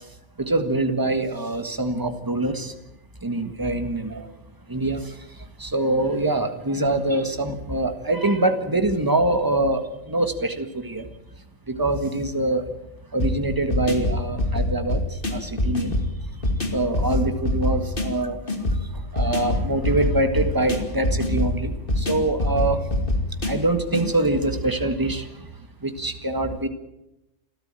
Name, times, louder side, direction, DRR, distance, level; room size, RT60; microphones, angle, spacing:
voice 1, 0.4-2.7 3.2-4.3 4.7-5.1 5.6-9.8 10.1-11.1 11.7-12.6 13.1-15.0 15.3-15.9 16.7-18.4 19.1-22.8 23.4-25.3 25.8-26.7, right 2 dB, 15° right, 8 dB, 1.7 m, -24 dB
sound 1, 13.2-24.1, left 1 dB, 40° left, 2.8 m, -25 dB
28.0 x 13.0 x 9.0 m, 0.93 s
omnidirectional pair, 1.4 m